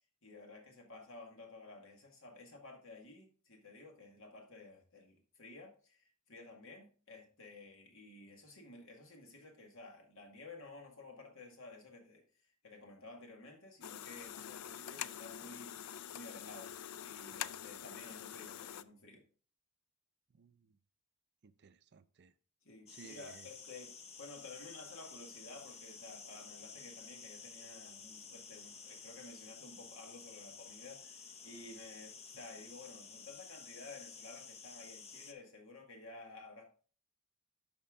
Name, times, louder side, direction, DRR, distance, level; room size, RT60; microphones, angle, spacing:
voice 1, 0.2-12.2 12.6-16.7 17.0-19.2 22.6-36.7, left 3 dB, 65° left, 1.9 m, -53 dB
sound 1, 13.8-18.8, left 10 dB, 85° left, 0.4 m, -45 dB
voice 2, 20.3-20.8 21.4-22.3 22.9-23.5, right 5 dB, 50° right, 0.5 m, -58 dB
sound 2, 22.9-35.3, left 5 dB, 30° left, 0.6 m, -52 dB
11.5 x 4.4 x 3.7 m
head